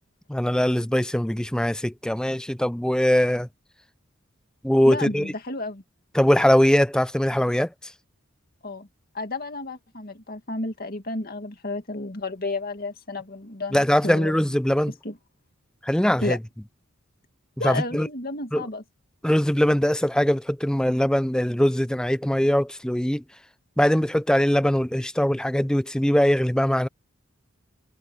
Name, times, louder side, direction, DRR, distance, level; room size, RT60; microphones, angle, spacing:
voice 1, 0.3-3.5 4.6-5.2 6.1-7.7 13.7-14.9 15.8-16.4 17.6-18.1 18.5-18.6 19.2-23.2 23.8-26.9, equal, 5° left, 0.4 m, -21 dB
voice 2, 4.8-5.8 8.6-8.9 9.1-14.4 15.0-15.2 16.2-16.4 17.6-18.8, left 2 dB, 45° left, 2.2 m, -32 dB
head